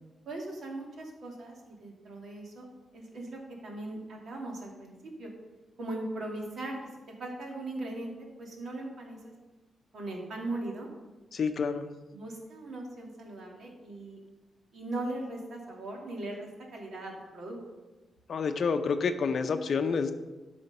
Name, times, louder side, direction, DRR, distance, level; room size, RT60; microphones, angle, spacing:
voice 1, 0.3-2.7 2.9-5.3 5.8-6.8 7.2-8.1 8.4-9.3 9.9-10.9 12.1-14.2 14.7-17.6, right 2 dB, 60° right, -1 dB, 2.4 m, -39 dB
voice 2, 11.3-11.9 18.3-20.1, left 5 dB, 50° left, 8 dB, 0.6 m, -28 dB
12.5 x 5.1 x 5.5 m, 1.2 s
wide cardioid pair, 140°, 0 cm